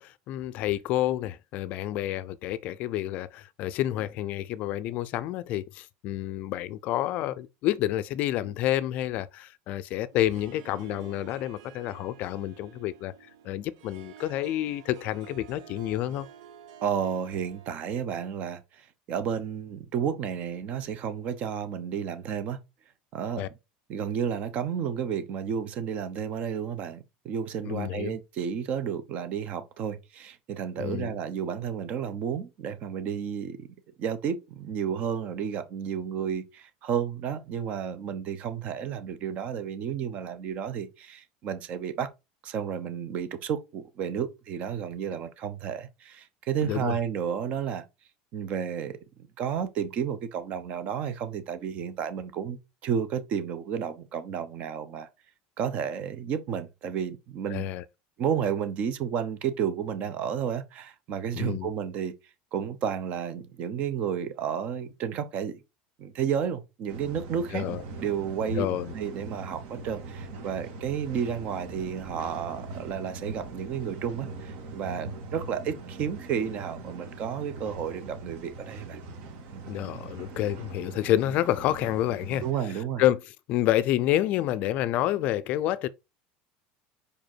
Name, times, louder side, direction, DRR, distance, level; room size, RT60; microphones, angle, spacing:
voice 1, 0.0-13.1 13.4-16.3 23.4-23.5 27.6-28.2 30.8-31.1 46.6-46.9 57.5-57.8 61.3-61.7 67.5-67.8 68.6-68.9 79.7-82.4 83.0-83.2 83.5-85.9, left 13 dB, 45° left, 0.4 m, -29 dB
Harp, 10.1-18.0, right 9 dB, 80° right, 1.1 m, -50 dB
voice 2, 16.8-22.6 23.1-23.4 23.9-42.1 42.4-47.8 48.3-49.0 49.4-55.1 55.6-57.6 58.2-62.1 62.5-65.6 66.0-67.6 68.0-79.0 79.5-79.6 82.4-83.0, right 8 dB, 40° right, 0.8 m, -32 dB
sound 1, 66.9-82.5, right 3 dB, 60° right, 1.9 m, -41 dB
5.0 x 5.0 x 4.5 m
cardioid pair, 165°, 4 cm